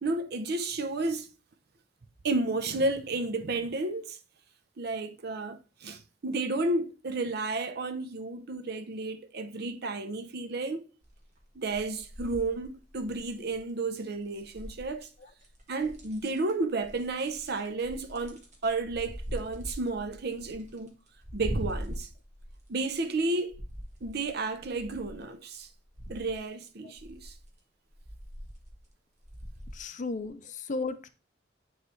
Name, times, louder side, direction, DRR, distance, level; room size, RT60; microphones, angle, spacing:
voice 1, 0.0-1.3 2.2-4.2 4.8-10.8 11.5-15.1 15.7-21.0 21.3-22.1 22.7-23.6 24.0-25.7 26.1-27.3, right 2 dB, 60° right, 0.7 m, -32 dB
sound 1, 11.0-11.4 11.7-13.6 14.3-15.1 15.4-16.5 16.8-23.2 23.5-25.2 25.6-26.4 27.0-27.5 27.9-28.9 29.2-29.8 30.2-30.3, equal, 40° right, 1.4 m, -41 dB
voice 2, 29.7-31.1, left 3 dB, 40° left, 0.5 m, -35 dB
9.3 x 3.2 x 3.2 m
head